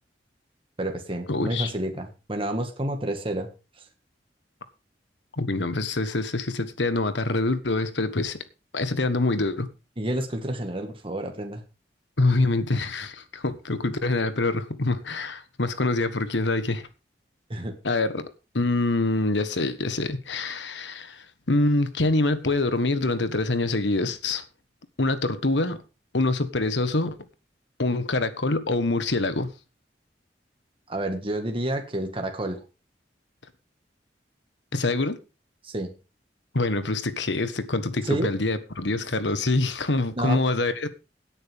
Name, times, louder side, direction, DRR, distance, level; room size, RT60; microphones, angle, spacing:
voice 1, 0.8-3.5 10.0-11.6 17.5-17.7 30.9-32.6 35.6-35.9 38.0-38.3 40.2-40.4, right 1 dB, 30° right, 1.8 m, -29 dB
voice 2, 1.3-1.7 5.4-8.4 8.7-9.7 12.2-16.9 17.8-18.3 18.5-24.4 25.0-25.8 26.1-27.2 27.8-29.5 34.7-35.2 36.5-40.9, left 2 dB, 85° left, 1.4 m, -25 dB
17.5 x 9.1 x 3.6 m
head